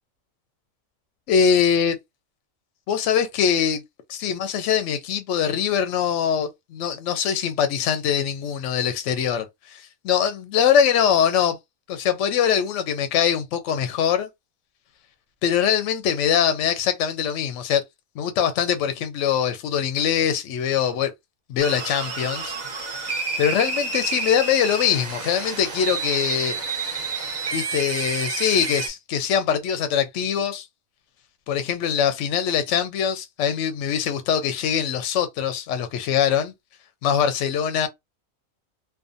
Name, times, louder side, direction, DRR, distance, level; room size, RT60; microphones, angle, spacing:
voice 1, 1.3-2.0 2.9-3.8 4.1-9.4 10.0-11.6 11.9-14.3 15.4-17.8 18.2-21.1 21.5-27.0 27.5-30.7 31.5-36.5 37.0-37.9, left 8 dB, 70° left, 0.8 m, -23 dB
sound 1, 21.6-28.9, right 4 dB, 40° right, 0.7 m, -29 dB
2.5 x 2.2 x 2.5 m
omnidirectional pair, 1.4 m